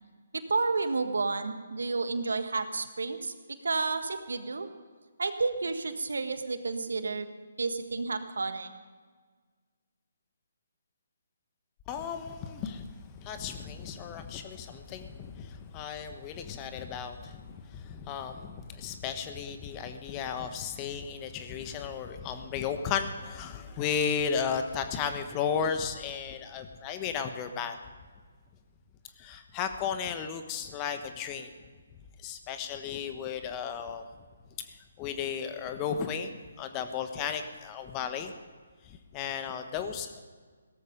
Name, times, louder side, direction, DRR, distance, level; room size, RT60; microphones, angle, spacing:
voice 1, 0.3-3.3 3.6-4.7 5.2-7.3 7.6-8.7, right 3 dB, 70° right, 9 dB, 1.5 m, -31 dB
voice 2, 11.9-27.7 29.2-31.5 32.2-34.1 34.7-38.3 38.8-40.2, left 7 dB, 25° left, 7 dB, 1.3 m, -34 dB
17.0 x 13.5 x 5.3 m, 1.5 s
figure-of-eight pair, 140°, 0 cm